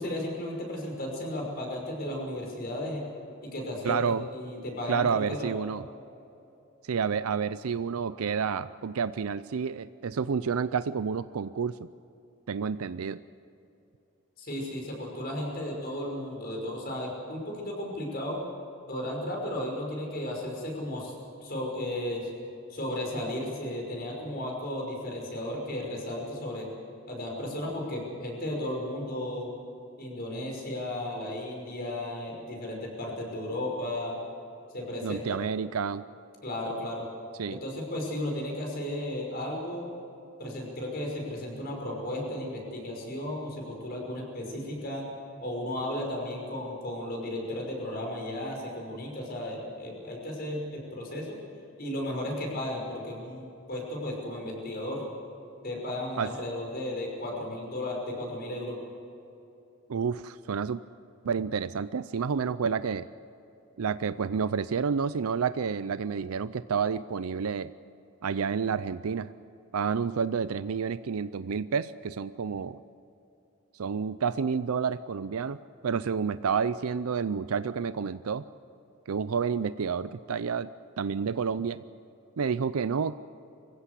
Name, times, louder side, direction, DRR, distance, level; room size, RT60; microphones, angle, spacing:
voice 1, 0.0-3.0 3.4-5.5 14.4-18.4 18.9-21.1 21.4-22.3 22.7-26.7 27.1-29.5 30.0-34.2 34.7-35.4 36.4-37.1 37.5-39.9 40.4-45.1 45.4-51.4 51.8-55.0 55.6-58.8, left 1 dB, 45° left, 0 dB, 5.7 m, -34 dB
voice 2, 3.8-4.3 4.9-5.8 6.8-11.9 12.5-13.2 35.0-36.0 37.4-37.6 56.2-56.3 59.9-60.8 61.2-63.1 63.8-67.7 68.2-69.3 69.7-72.8 73.7-75.6 75.8-78.4 79.1-80.7 81.0-81.8 82.4-83.2, right 6 dB, 80° right, 14 dB, 0.5 m, -29 dB
24.5 x 15.5 x 8.3 m, 2.8 s
head